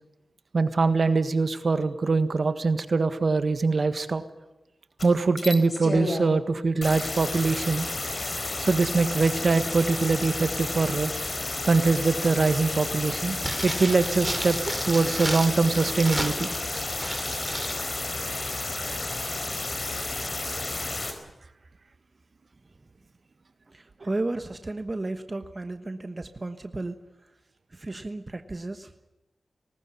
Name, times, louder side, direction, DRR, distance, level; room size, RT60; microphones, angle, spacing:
voice 1, 0.5-4.2 5.0-7.9 8.6-11.1 11.7-14.6 14.8-16.5, right 3 dB, 60° right, 11 dB, 1.6 m, -23 dB
sound 1, 5.0-5.1 5.4-6.3 6.8-21.1, left 2 dB, 50° left, 4.5 m, -31 dB
sound 2, 13.4-17.8 18.1-18.2, right 1 dB, 5° right, 4.0 m, -33 dB
voice 2, 23.7-27.0 27.7-28.9, right 2 dB, 35° right, 8 dB, 1.2 m, -33 dB
19.5 x 18.5 x 9.8 m, 0.99 s
cardioid pair, 60°, 0 cm